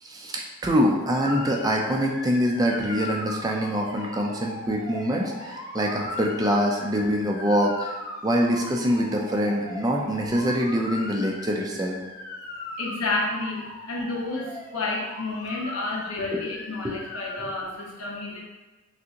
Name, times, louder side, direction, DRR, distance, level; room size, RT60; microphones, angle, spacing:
voice 1, 0.0-7.9 8.2-11.9 16.2-16.5 16.8-17.0 17.4-17.5, equal, 20° right, 0 dB, 0.4 m, -25 dB
Motor vehicle (road) / Siren, 1.2-17.4, left 2 dB, 45° left, 0.7 m, -39 dB
voice 2, 12.8-18.4, left 2 dB, 85° left, -3 dB, 1.0 m, -30 dB
6.0 x 2.5 x 2.9 m, 1.2 s
head